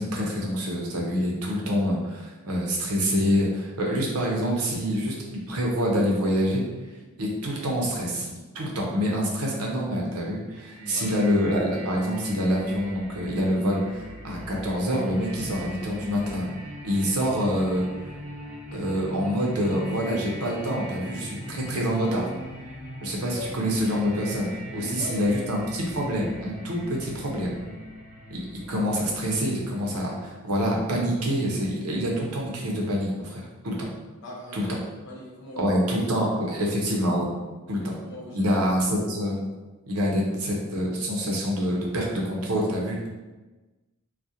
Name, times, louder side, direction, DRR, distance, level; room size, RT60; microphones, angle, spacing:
voice 1, 0.0-6.6 7.2-8.3 8.5-16.5 16.8-17.9 18.7-22.3 23.0-27.6 28.3-33.9 34.5-34.7 35.6-37.3 37.7-37.9 38.3-39.5 39.9-43.1, equal, 85° right, -2 dB, 0.6 m, -26 dB
sound 1, 10.5-30.3, equal, 30° right, 0.8 m, -41 dB
voice 2, 10.8-11.1 23.3-23.5 24.7-25.4 28.4-28.7 34.2-34.7 35.0-35.8 36.2-36.8 37.8-38.6, left 2 dB, 55° left, -5 dB, 0.7 m, -40 dB
2.3 x 2.1 x 2.7 m, 1.2 s
head